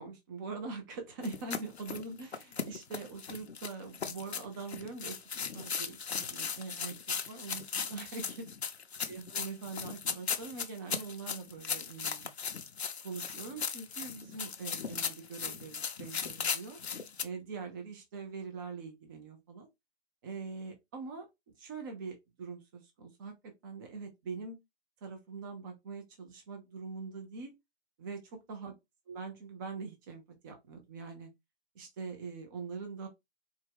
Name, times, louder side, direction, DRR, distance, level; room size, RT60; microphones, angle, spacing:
voice 1, 0.0-6.9 7.3-8.5 9.1-12.3 13.0-16.8 17.2-19.7 20.2-21.3 21.6-24.6 25.0-27.5 28.0-28.2 28.5-28.7 29.1-31.3 31.7-33.1, right 4 dB, 20° right, 0.6 m, -43 dB
sound 1, 1.2-17.2, left 6 dB, 70° left, 0.7 m, -37 dB
4.5 x 2.2 x 3.5 m
figure-of-eight pair, 130°, 33 cm